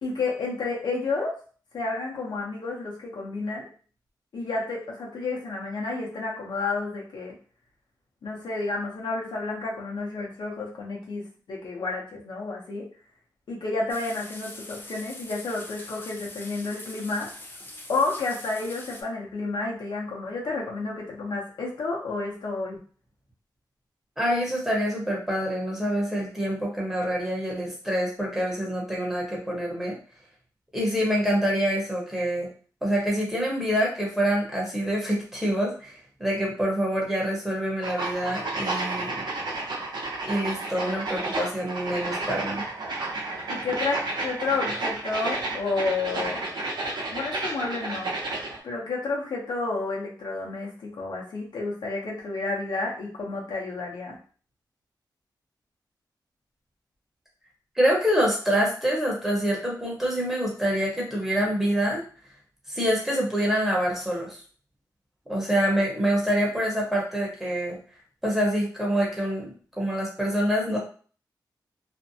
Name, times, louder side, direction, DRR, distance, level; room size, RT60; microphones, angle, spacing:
voice 1, 0.0-1.4 1.7-3.7 4.3-7.3 8.2-12.9 13.5-17.3 17.9-22.8 43.5-46.4 47.1-48.3 48.6-54.2, left 3 dB, 80° left, -2 dB, 0.8 m, -30 dB
sound 1, 13.9-19.0, left 1 dB, 30° left, 0.5 m, -43 dB
voice 2, 24.2-30.0 30.7-32.5 32.8-39.2 40.2-42.6 57.8-62.0 62.7-64.4 65.3-67.8 68.2-70.8, equal, 5° right, -4 dB, 0.9 m, -26 dB
sound 2, 37.8-48.6, right 2 dB, 80° right, 0.7 m, -31 dB
2.5 x 2.1 x 2.6 m, 0.41 s
wide cardioid pair, 115°, 8 cm